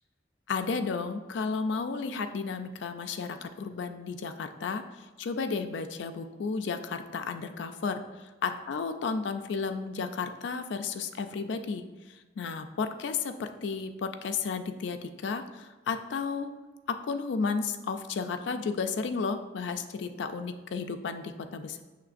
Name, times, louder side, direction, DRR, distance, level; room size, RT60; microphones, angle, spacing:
voice 1, 0.5-4.8 5.2-8.0 8.4-11.9 12.4-16.5 17.1-21.8, left 5 dB, 65° left, 8 dB, 0.3 m, -33 dB
6.7 x 3.1 x 2.5 m, 1.2 s
head